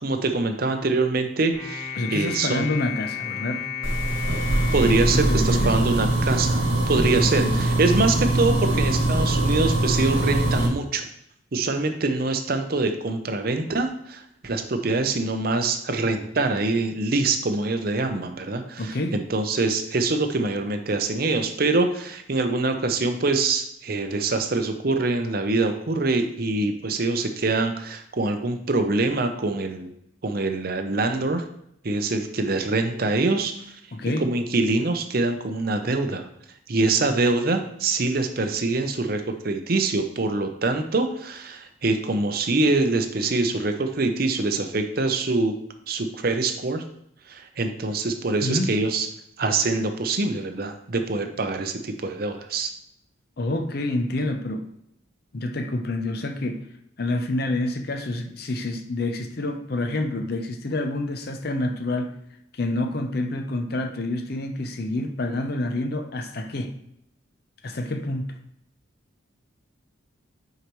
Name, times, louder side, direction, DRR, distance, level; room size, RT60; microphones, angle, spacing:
voice 1, 0.0-2.7 4.7-6.6 6.9-11.1 11.5-29.9 30.2-31.4 31.8-33.7 34.2-36.3 36.7-45.5 45.9-46.8 47.3-49.1 49.4-52.7, right 3 dB, 45° right, 6 dB, 0.6 m, -24 dB
sound 1, 1.5-6.0, left 8 dB, 30° left, 2.3 m, -34 dB
voice 2, 2.0-3.7 5.1-5.7 7.4-7.5 18.8-19.2 33.9-34.3 48.4-48.7 53.4-54.6 55.3-56.6 57.0-62.1 62.5-66.8 67.6-68.4, left 2 dB, 50° left, 6 dB, 0.6 m, -28 dB
sound 2, 3.8-10.7, right 1 dB, 80° right, 1.7 m, -22 dB
8.0 x 4.9 x 3.0 m, 0.74 s
head